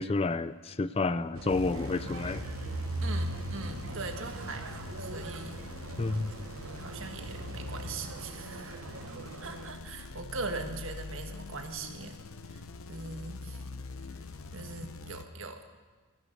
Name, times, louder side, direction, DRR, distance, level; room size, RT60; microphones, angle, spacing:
voice 1, 0.0-2.4 6.0-6.3, left 3 dB, 25° left, 15 dB, 0.4 m, -30 dB
sound 1, 1.3-9.7, right 2 dB, 85° right, 1.0 m, -39 dB
sound 2, 1.5-15.2, left 3 dB, 85° left, 0.8 m, -44 dB
voice 2, 3.0-5.6 6.8-8.8 9.4-12.2 12.5-12.6 12.9-13.6 14.5-15.6, right 3 dB, 70° right, 5 dB, 1.5 m, -41 dB
14.0 x 10.5 x 7.9 m, 1.4 s
head